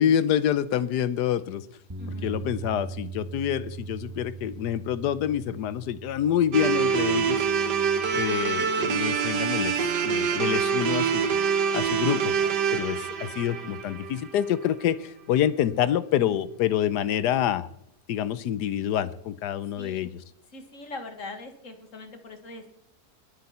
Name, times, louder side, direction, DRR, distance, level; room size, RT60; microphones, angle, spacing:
voice 1, 0.0-1.7 2.1-7.5 8.1-11.3 11.7-12.3 12.7-17.7 18.1-20.1, left 10 dB, 90° left, 15 dB, 1.3 m, -27 dB
Bass guitar, 1.9-8.1, right 5 dB, 15° right, 1.1 m, -40 dB
voice 2, 2.0-2.4 19.8-20.1 20.5-22.8, left 3 dB, 50° left, 7 dB, 2.1 m, -42 dB
sound 1, 6.5-14.6, right 6 dB, 90° right, 1.8 m, -26 dB
21.0 x 8.0 x 4.3 m, 0.74 s
omnidirectional pair, 1.7 m